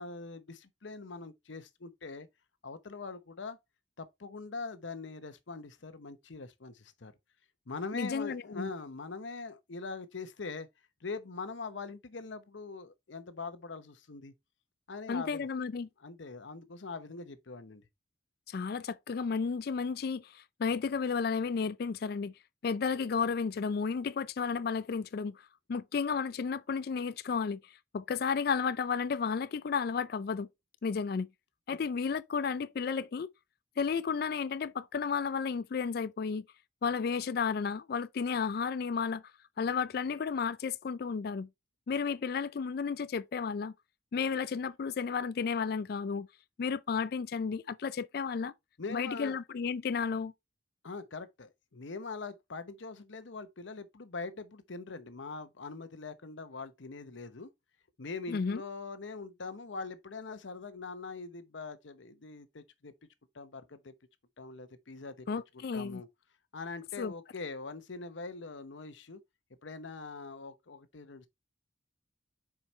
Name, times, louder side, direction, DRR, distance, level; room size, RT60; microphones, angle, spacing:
voice 1, 0.0-2.3 2.6-3.6 4.0-7.1 7.7-10.7 11.0-14.3 14.9-15.5 16.0-17.8 31.7-31.8 48.8-49.4 50.8-57.5 58.0-62.9 63.3-63.9 64.4-65.3 65.5-66.1 66.5-69.2 69.6-71.3, left 4 dB, 80° left, 0.8 m, -42 dB
voice 2, 7.9-8.7 15.1-15.9 18.5-22.3 22.6-30.5 30.8-31.3 31.7-33.3 33.8-36.4 36.8-39.2 39.6-41.5 41.9-43.7 44.1-46.3 46.6-48.5 48.9-50.3 58.3-58.6 65.3-66.0 67.0-67.1, left 5 dB, 55° left, 0.4 m, -33 dB
7.2 x 4.8 x 3.1 m
head